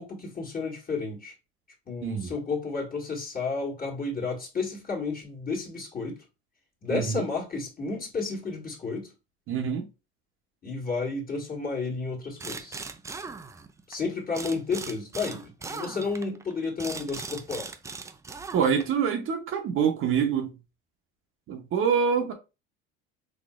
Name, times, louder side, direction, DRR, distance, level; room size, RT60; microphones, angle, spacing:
voice 1, 0.0-1.3 1.9-6.2 6.8-9.1 10.6-12.8 13.9-17.7, left 4 dB, 30° left, 1.6 m, -32 dB
voice 2, 6.9-7.3 9.5-9.9 18.5-20.6 21.5-22.3, right 7 dB, 45° right, 0.8 m, -26 dB
sound 1, 12.4-14.0 14.3-19.0, right 4 dB, 10° right, 0.3 m, -39 dB
4.1 x 2.7 x 2.4 m
hypercardioid pair, 80°, 30 cm